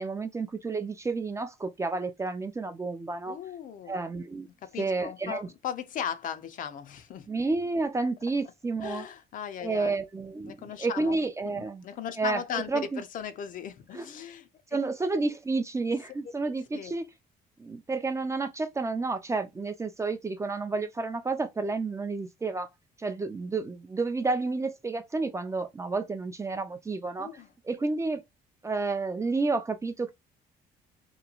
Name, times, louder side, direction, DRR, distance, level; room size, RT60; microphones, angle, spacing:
voice 1, 0.0-3.4 3.9-4.5 4.8-5.5 7.3-9.1 9.6-11.8 12.2-12.4 12.7-13.0 13.9-14.1 14.7-17.0 17.6-22.7 23.0-27.3 27.6-28.2 28.6-30.1, right 3 dB, 15° right, 0.4 m, -30 dB
voice 2, 3.3-4.0 4.6-7.3 8.8-10.0 10.5-11.2 11.4-14.5 16.7-16.9 27.2-27.5, left 8 dB, 55° left, 0.5 m, -37 dB
2.9 x 2.2 x 2.3 m
cardioid pair, 110°, 17 cm